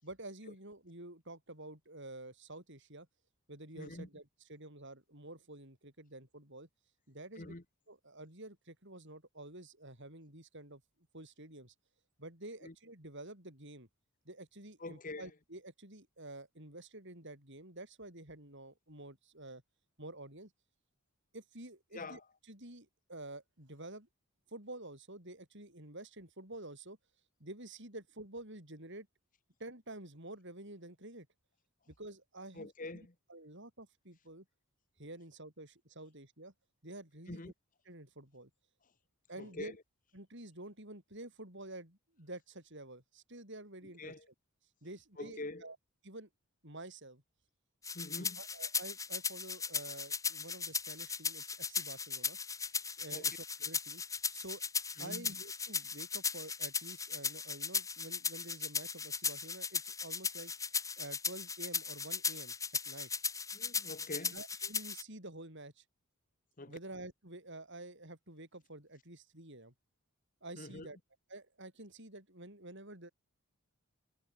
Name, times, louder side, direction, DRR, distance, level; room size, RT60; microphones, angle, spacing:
voice 1, 0.0-3.1 3.5-4.2 4.5-6.7 7.1-7.5 7.9-10.8 11.1-11.7 12.2-13.9 14.3-19.6 20.0-20.5 21.3-22.2 22.5-24.1 24.5-27.0 27.4-29.1 29.6-31.3 31.9-32.7 33.3-34.4 35.0-36.5 36.8-37.5 37.9-38.5 39.3-39.8 40.1-44.1 44.8-45.8 46.0-46.3 46.6-47.2 48.2-52.4 53.0-54.0 54.3-54.6 55.0-60.5 61.0-62.5 62.9-63.1 64.3-65.8 66.7-69.7 70.4-71.0 71.3-73.1, right 2 dB, 55° right, 7.8 m, -49 dB
voice 2, 3.7-4.1 7.4-7.6 12.6-12.7 14.8-15.3 21.9-22.2 32.5-33.1 37.3-37.5 39.4-39.8 43.8-44.3 45.2-45.7 47.9-48.4 53.1-53.3 55.0-55.3 63.5-64.4 66.6-66.8 70.6-70.9, left 2 dB, 35° left, 1.4 m, -45 dB
sound 1, 47.8-65.0, left 5 dB, 15° left, 1.9 m, -37 dB
head